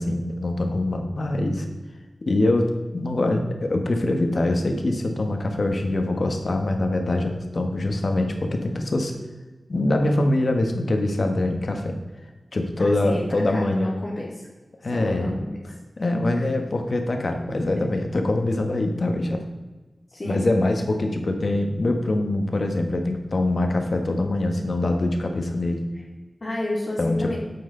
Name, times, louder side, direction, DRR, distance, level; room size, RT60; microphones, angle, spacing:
voice 1, 0.0-1.7 2.2-9.1 9.7-12.0 12.5-13.9 14.8-15.4 16.0-19.4 20.2-25.8 27.0-27.4, left 2 dB, 60° left, 4 dB, 1.4 m, -24 dB
voice 2, 12.8-13.2 13.5-14.5 14.9-15.5 16.3-16.5 18.7-18.8 20.1-20.5 26.4-27.4, left 1 dB, 40° left, -7 dB, 2.4 m, -30 dB
9.7 x 7.7 x 3.9 m, 1.2 s
wide cardioid pair, 90°, 0 cm